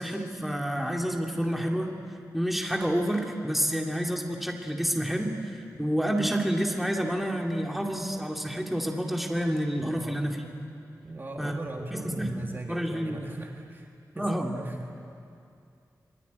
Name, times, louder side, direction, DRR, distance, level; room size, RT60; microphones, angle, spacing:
voice 1, 0.0-1.9 2.3-10.4 11.4-11.5 11.9-12.3 12.7-13.3 14.1-14.5, equal, ahead, 0 dB, 2.5 m, -29 dB
voice 2, 11.0-15.0, right 2 dB, 35° right, 1 dB, 1.8 m, -39 dB
25.5 x 22.5 x 9.5 m, 2.5 s
wide cardioid pair, 165°, 7 cm